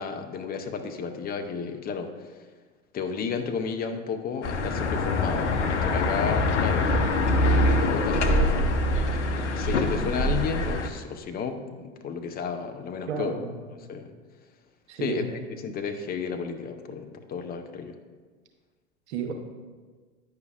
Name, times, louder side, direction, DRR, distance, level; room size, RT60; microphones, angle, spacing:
voice 1, 0.0-2.1 2.9-8.6 9.3-13.4 13.7-14.1 15.0-18.0, left 6 dB, 25° left, 7 dB, 0.6 m, -33 dB
sound 1, 4.4-10.9, left 1 dB, 80° left, 0.6 m, -24 dB
voice 2, 13.1-13.6 14.9-15.3 19.1-19.3, right 5 dB, 70° right, 4 dB, 0.9 m, -32 dB
9.6 x 5.4 x 2.4 m, 1.4 s
figure-of-eight pair, 80°, 35 cm